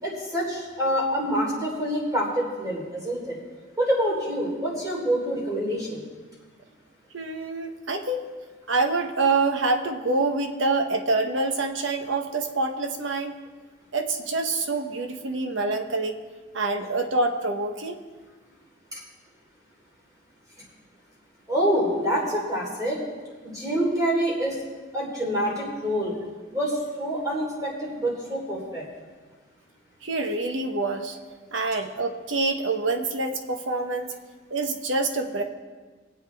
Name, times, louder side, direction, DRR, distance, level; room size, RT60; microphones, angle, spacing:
voice 1, 0.0-3.4 3.8-6.0 18.9-19.0 21.5-23.0 23.4-24.6 24.9-26.1 26.5-28.8, equal, 20° right, -4 dB, 3.6 m, -26 dB
voice 2, 7.1-8.3 8.7-13.4 13.9-16.2 16.5-18.0 30.0-31.2 31.5-34.1 34.5-35.4, right 3 dB, 75° right, 5 dB, 1.1 m, -26 dB
22.5 x 8.2 x 3.5 m, 1.4 s
head